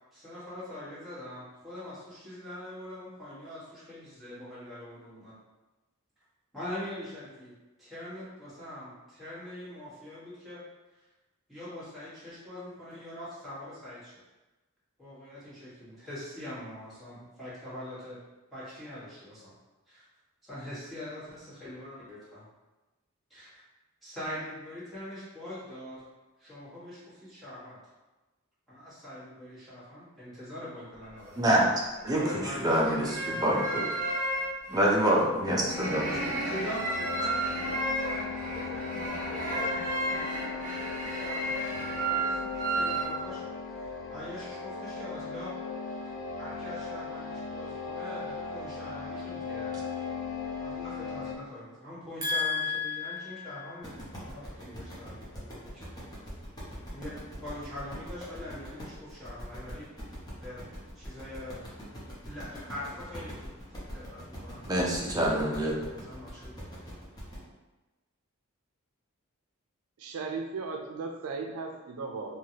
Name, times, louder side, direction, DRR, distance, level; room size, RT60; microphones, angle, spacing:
voice 1, 0.1-5.3 6.5-7.5 7.8-10.6 10.9-11.0 11.5-14.1 15.0-18.2 18.5-19.5 19.9-20.0 20.4-22.4 23.3-23.5 24.0-26.0 26.4-27.8 28.7-31.4 32.1-32.9 36.5-40.1 40.5-43.4 43.8-45.5 45.9-46.1 46.4-49.8 50.6-55.8 56.9-57.1 57.4-59.9 60.4-61.7 62.2-64.6 65.2-66.5, left 1 dB, ahead, -13 dB, 1.4 m, -43 dB
sound 1, 31.0-31.5 32.0-43.1, right 2 dB, 40° right, 1.0 m, -33 dB
voice 2, 31.4-31.7 32.0-33.9 34.7-36.1 52.2-53.6 64.7-65.8, equal, 15° right, -2 dB, 0.4 m, -27 dB
sound 2, 35.5-51.3, left 4 dB, 60° left, 0.4 m, -38 dB
sound 3, 53.8-67.4, equal, 20° left, 0.8 m, -43 dB
voice 3, 70.0-72.4, right 4 dB, 80° right, 3 dB, 0.4 m, -36 dB
3.2 x 2.3 x 2.7 m, 1.1 s
head